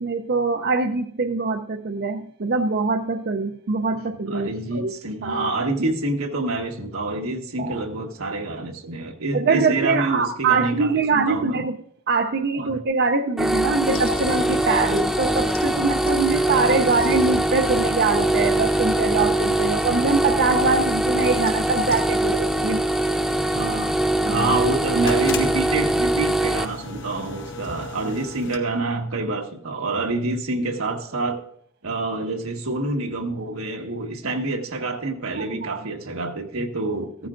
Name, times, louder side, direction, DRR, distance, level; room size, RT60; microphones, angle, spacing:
voice 1, 0.0-4.9 5.2-5.5 7.6-7.7 9.3-11.8 12.1-22.8 24.2-24.5 35.4-35.8, right 4 dB, 50° right, 6 dB, 0.5 m, -23 dB
voice 2, 4.3-11.7 12.5-12.8 21.7-22.0 23.5-31.4 31.8-37.3, right 2 dB, 85° right, 2 dB, 1.5 m, -27 dB
sound 1, 13.4-26.6, right 1 dB, ahead, 0.3 m, -22 dB
sound 2, 13.8-28.6, left 2 dB, 60° left, 1.2 m, -36 dB
15.0 x 13.5 x 2.5 m, 0.68 s
head